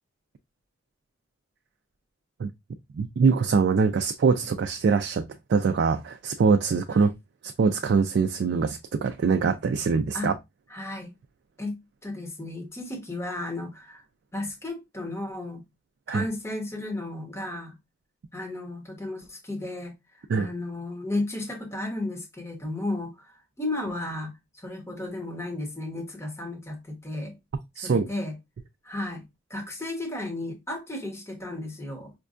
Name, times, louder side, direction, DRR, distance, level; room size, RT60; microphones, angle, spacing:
voice 1, 3.0-5.2 5.5-7.1 7.6-10.3 16.1-16.2 20.3-20.5 27.8-28.1, right 5 dB, 55° right, 0.3 m, -23 dB
voice 2, 10.7-11.1 11.6-14.0 14.3-15.6 16.1-17.7 18.3-19.9 20.3-24.3 24.6-27.3 27.8-28.3 28.8-29.2 29.5-32.1, left 2 dB, 15° left, 0.9 m, -34 dB
5.2 x 2.2 x 2.4 m
head